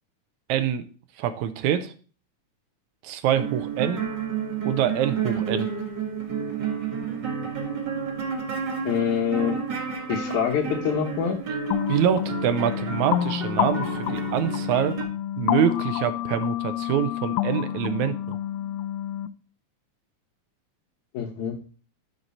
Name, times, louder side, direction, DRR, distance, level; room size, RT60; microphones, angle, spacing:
voice 1, 0.5-0.8 1.2-1.9 3.0-4.1 4.6-5.7 11.9-15.0 15.4-18.4, right 9 dB, 75° right, 10 dB, 2.0 m, -25 dB
sound 1, 3.4-15.0, right 6 dB, 40° right, 2.0 m, -31 dB
voice 2, 8.9-9.6 10.1-11.4 21.1-21.6, left 7 dB, 75° left, 1 dB, 2.4 m, -25 dB
sound 2, 11.7-19.3, left 13 dB, 90° left, 2.1 m, -28 dB
11.0 x 5.3 x 4.2 m, 0.38 s
omnidirectional pair, 3.5 m